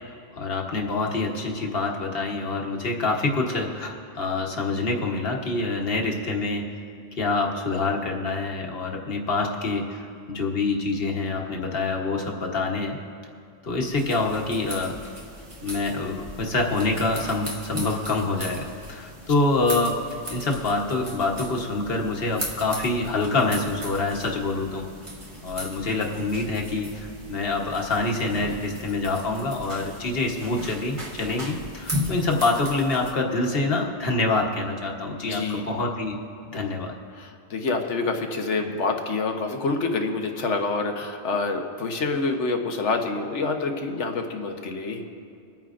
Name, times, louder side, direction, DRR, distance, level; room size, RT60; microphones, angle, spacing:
voice 1, 0.1-6.7 7.1-13.0 13.6-15.0 15.6-24.8 25.4-36.2 36.5-36.9, left 3 dB, 55° left, 0 dB, 1.4 m, -26 dB
sound 1, 13.9-33.1, equal, 30° right, 1.4 m, -37 dB
voice 2, 35.2-35.7 36.5-36.6 37.2-45.1, left 3 dB, 90° left, 4 dB, 1.3 m, -27 dB
26.0 x 9.2 x 2.5 m, 2.4 s
omnidirectional pair, 1.2 m